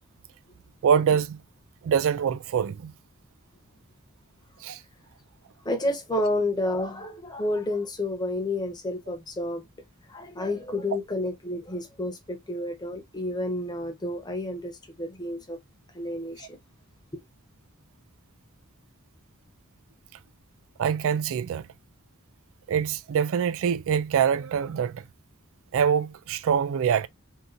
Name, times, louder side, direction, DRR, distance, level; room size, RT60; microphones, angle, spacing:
voice 1, 0.8-1.4 1.8-2.9 4.6-4.8 20.8-21.6 22.7-25.0 25.7-27.1, right 7 dB, 65° right, 0.3 m, -24 dB
voice 2, 5.6-9.7 10.1-15.6 15.9-16.6, left 1 dB, 20° left, 0.9 m, -30 dB
3.7 x 2.5 x 2.6 m
head